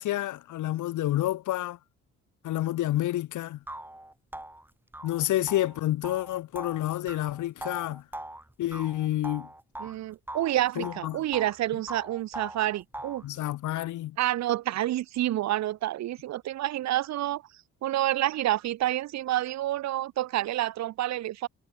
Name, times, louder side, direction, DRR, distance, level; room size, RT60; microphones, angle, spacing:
voice 1, 0.0-1.8 2.4-3.6 5.0-8.0 8.6-9.5 10.8-11.2 13.2-14.2, left 14 dB, 75° left, 1.4 m, -29 dB
sound 1, 3.1-3.2 3.7-10.0 10.3-11.6 11.9-13.3, right 1 dB, 5° right, 4.4 m, -41 dB
voice 2, 9.8-13.2 14.2-17.4 17.8-21.5, right 14 dB, 65° right, 0.6 m, -28 dB
cardioid pair, 90°, 30 cm